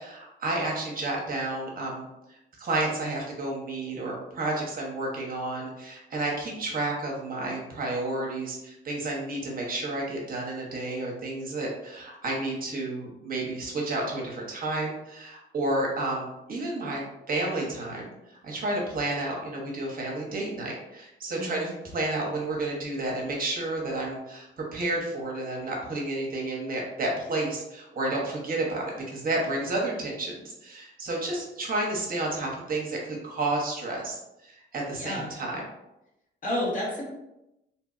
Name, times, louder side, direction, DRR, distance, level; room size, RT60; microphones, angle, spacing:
voice 1, 0.0-18.1 18.4-35.6, right 2 dB, 45° right, -2 dB, 0.8 m, -31 dB
voice 2, 21.3-21.7 35.0-35.3 36.4-37.0, left 1 dB, 40° left, -5 dB, 1.4 m, -30 dB
2.7 x 2.6 x 2.4 m, 0.90 s
cardioid pair, 90°, 20 cm